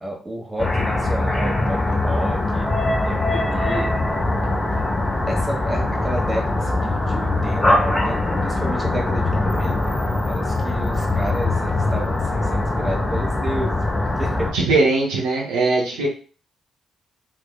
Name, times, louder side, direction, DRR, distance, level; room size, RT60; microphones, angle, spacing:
voice 1, 0.0-2.7 3.0-3.9 5.3-14.5, right 1 dB, 20° right, 0 dB, 1.2 m, -31 dB
sound 1, 0.6-14.5, left 2 dB, 30° left, 0.9 m, -22 dB
voice 2, 14.5-16.1, right 3 dB, 75° right, -2 dB, 0.7 m, -20 dB
3.6 x 3.1 x 2.3 m, 0.39 s
hypercardioid pair, 40°, 0 cm